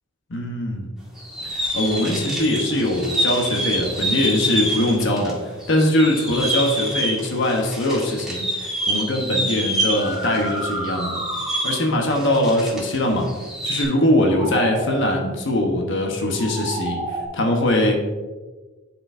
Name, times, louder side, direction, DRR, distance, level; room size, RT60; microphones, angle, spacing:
voice 1, 0.3-0.9 1.4-5.4 5.7-11.2 11.6-13.3 13.6-17.9, left 1 dB, 60° left, 1 dB, 1.1 m, -21 dB
sound 1, 1.2-5.3 5.6-13.0 13.2-13.8, right 1 dB, 5° right, 1.8 m, -27 dB
sound 2, 8.8-9.0 9.8-12.1 14.0-15.2 16.1-17.3, right 2 dB, 20° right, 0.8 m, -31 dB
11.5 x 4.4 x 2.6 m, 1.3 s
head